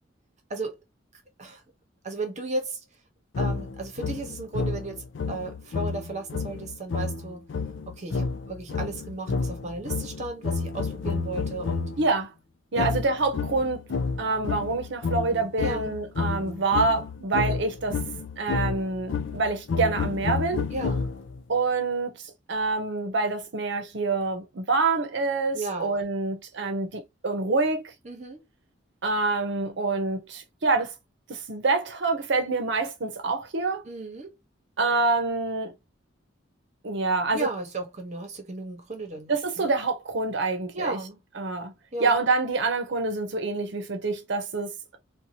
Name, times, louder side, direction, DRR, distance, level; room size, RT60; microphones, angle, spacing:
voice 1, 2.0-2.8 3.4-7.5 7.9-11.9 12.8-12.9 15.6-15.9 20.7-21.1 25.5-26.0 28.0-28.4 33.8-34.3 37.3-39.7 40.7-41.2 41.9-42.2, right 2 dB, 40° right, 1.0 m, -34 dB
sound 1, 3.3-12.1 12.8-21.4, left 4 dB, 70° left, 0.4 m, -30 dB
voice 2, 12.0-12.3 12.7-13.8 14.2-18.0 18.4-20.7 21.5-22.2 22.5-27.8 29.0-30.9 31.3-33.8 34.8-35.7 36.8-37.5 39.3-41.0 41.4-41.7 42.0-45.0, right 3 dB, 65° right, 0.7 m, -26 dB
2.7 x 2.3 x 2.7 m
head